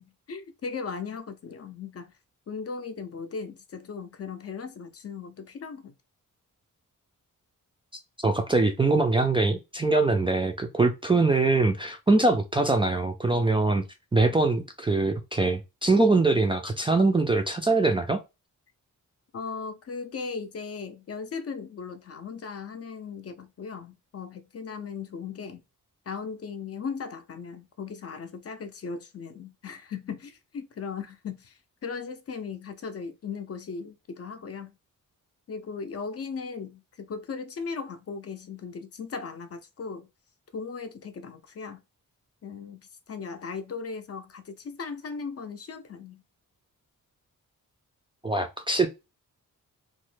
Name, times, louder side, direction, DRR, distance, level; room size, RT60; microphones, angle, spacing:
voice 1, 0.0-2.1 2.5-5.9 19.3-25.6 26.1-34.8 35.5-40.1 40.5-41.8 42.4-42.8 43.1-46.2, left 5 dB, 45° left, 0.5 m, -37 dB
voice 2, 8.2-13.8 14.1-18.2 48.2-48.9, right 3 dB, 15° right, 0.3 m, -23 dB
3.0 x 2.1 x 3.1 m
wide cardioid pair, 125°, 34 cm